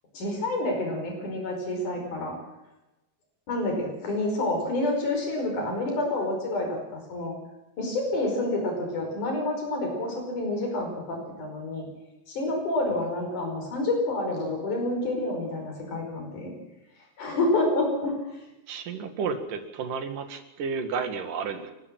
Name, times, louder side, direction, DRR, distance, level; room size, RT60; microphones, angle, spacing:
voice 1, 0.1-2.3 3.5-6.8 7.1-7.3 7.8-11.8 12.3-16.5 17.2-18.1, left 2 dB, 70° left, 2 dB, 6.5 m, -28 dB
voice 2, 18.7-21.7, right 5 dB, 85° right, 8 dB, 3.5 m, -32 dB
29.5 x 12.0 x 7.6 m, 0.99 s
omnidirectional pair, 3.7 m